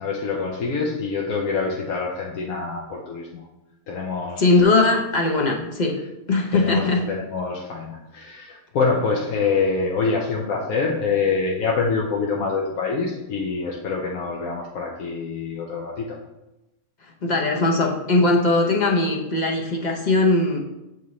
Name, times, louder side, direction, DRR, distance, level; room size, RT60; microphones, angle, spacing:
voice 1, 0.0-3.4 3.9-4.4 6.5-16.2, left 4 dB, 80° left, -1 dB, 1.2 m, -25 dB
voice 2, 4.4-6.0 6.3-7.0 17.2-20.6, left 2 dB, 45° left, 0 dB, 0.6 m, -20 dB
6.8 x 4.7 x 3.1 m, 0.95 s
omnidirectional pair, 1.5 m